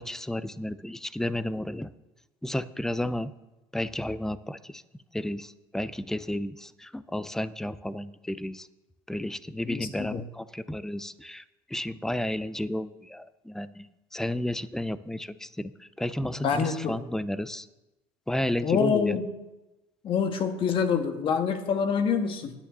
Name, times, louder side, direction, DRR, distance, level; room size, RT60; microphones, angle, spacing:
voice 1, 0.0-1.9 2.4-3.3 3.7-4.8 5.1-8.7 9.1-11.4 11.7-13.9 14.1-17.7 18.3-19.2, left 1 dB, 5° left, 15 dB, 0.5 m, -32 dB
voice 2, 9.6-10.2 16.2-16.9 18.6-19.2 20.0-22.5, left 6 dB, 45° left, 6 dB, 1.6 m, -26 dB
9.9 x 9.3 x 6.8 m, 1.0 s
supercardioid pair, 100°, 13 cm